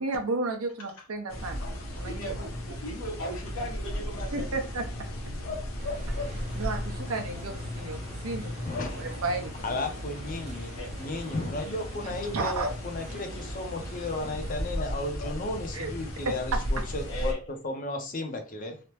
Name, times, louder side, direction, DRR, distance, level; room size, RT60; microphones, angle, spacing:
voice 1, 0.0-2.3 4.3-5.1 6.1-8.6 8.9-9.9 12.3-12.7 15.7-15.9 16.2-16.3, right 3 dB, 80° right, 5 dB, 0.7 m, -33 dB
sound 1, 1.3-17.3, left 1 dB, 70° left, 0.8 m, -35 dB
voice 2, 2.0-4.6 6.4-6.6 8.9-9.0 10.8-10.9 17.1-17.4, right 1 dB, 85° left, -1 dB, 1.2 m, -38 dB
sound 2, 5.8-14.5, right 2 dB, 30° right, 0.5 m, -48 dB
voice 3, 8.6-9.2 9.6-10.7 11.0-18.8, left 2 dB, 40° left, 5 dB, 0.5 m, -34 dB
3.3 x 2.0 x 2.9 m, 0.35 s
head